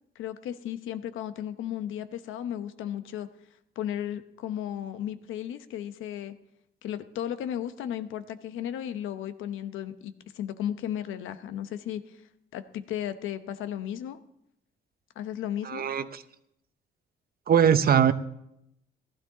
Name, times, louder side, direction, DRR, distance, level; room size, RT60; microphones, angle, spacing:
voice 1, 0.1-3.3 3.8-6.3 6.8-12.2 12.5-14.2 15.2-15.8, left 10 dB, 85° left, 11 dB, 0.9 m, -34 dB
voice 2, 15.6-16.2 17.5-18.1, right 8 dB, 50° right, 13 dB, 0.8 m, -21 dB
15.0 x 13.0 x 3.8 m, 0.80 s
cardioid pair, 90°, 20 cm